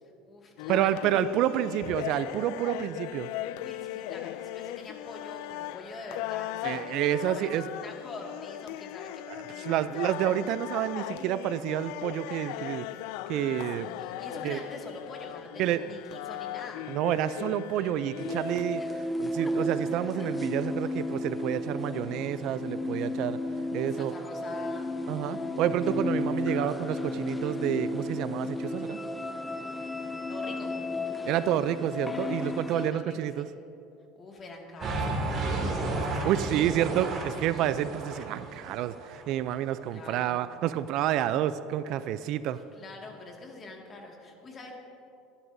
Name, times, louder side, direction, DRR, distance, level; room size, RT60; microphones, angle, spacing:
voice 1, 0.0-1.1 1.5-1.8 3.5-7.1 7.4-9.2 9.5-10.0 13.7-16.8 23.9-24.9 29.5-30.7 32.7-33.5 34.2-37.4 39.9-40.4 42.2-44.8, left 2 dB, 30° left, 0 dB, 2.0 m, -45 dB
sound 1, 0.6-18.6, left 15 dB, 75° left, 0.3 m, -38 dB
voice 2, 0.7-3.3 6.6-7.7 9.3-12.9 13.3-13.9 14.4-14.6 15.6-15.8 16.9-23.4 23.7-24.1 25.1-29.0 31.2-33.5 36.2-42.6, right 12 dB, 55° right, 13 dB, 0.4 m, -29 dB
sound 2, 18.2-32.9, left 2 dB, 10° left, 0.5 m, -33 dB
sound 3, 34.8-39.2, right 2 dB, 35° right, 2.5 m, -32 dB
24.5 x 11.0 x 2.7 m, 2.7 s
cardioid pair, 135°, 0 cm